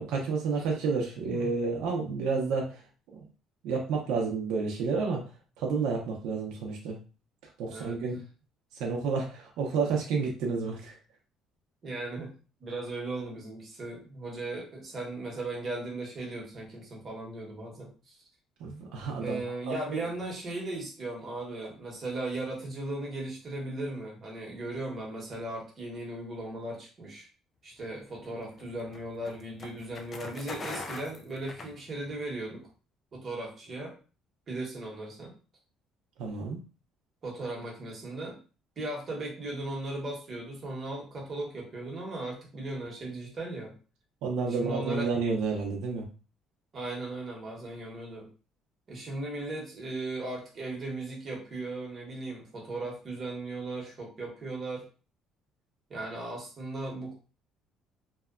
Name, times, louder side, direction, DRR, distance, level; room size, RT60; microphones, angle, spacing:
voice 1, 0.0-2.8 3.1-3.3 3.6-5.2 5.6-7.0 7.6-8.2 8.8-11.0 18.6-19.4 19.7-20.0 36.2-36.6 44.2-46.1, right 4 dB, 85° right, 0 dB, 0.6 m, -30 dB
voice 2, 7.7-8.0 11.8-12.3 12.6-18.2 19.2-27.3 27.6-32.7 33.1-33.9 34.5-35.3 37.2-38.4 38.8-43.7 44.6-45.1 46.7-48.3 48.9-54.8 55.9-57.1, right 2 dB, 30° right, -2 dB, 1.0 m, -37 dB
sound 1, 27.9-32.3, left 3 dB, 30° left, 0.3 m, -42 dB
2.8 x 2.1 x 2.4 m, 0.36 s
cardioid pair, 160°, 0 cm